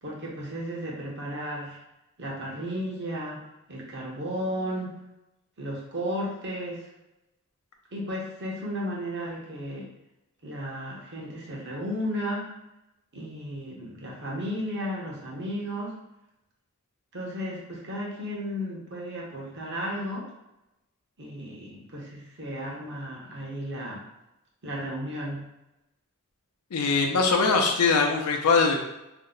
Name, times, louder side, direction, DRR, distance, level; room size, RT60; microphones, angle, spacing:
voice 1, 0.0-1.8 2.2-3.4 3.7-4.9 5.6-6.9 7.9-9.9 10.4-12.5 13.1-16.0 17.1-20.3 21.2-24.0 24.6-25.4, equal, 50° right, -3 dB, 0.9 m, -34 dB
voice 2, 26.7-28.8, left 4 dB, 90° left, 3 dB, 0.5 m, -22 dB
2.7 x 2.1 x 3.8 m, 0.92 s
head